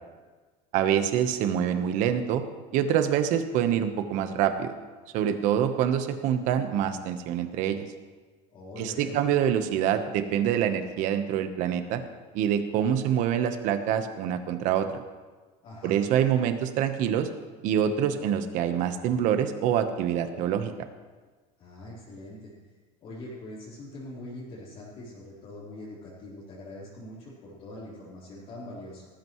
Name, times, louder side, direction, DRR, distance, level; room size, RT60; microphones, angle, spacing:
voice 1, 0.7-2.4 2.7-4.7 5.1-7.9 8.8-12.0 12.3-15.0 15.8-17.3 17.6-20.7, right 9 dB, 55° right, 9 dB, 1.1 m, -26 dB
voice 2, 8.5-9.2 15.6-16.0 21.6-22.5 23.0-29.1, left 1 dB, 40° left, -10 dB, 4.0 m, -43 dB
18.5 x 15.0 x 3.2 m, 1.4 s
cardioid pair, 160°, 15 cm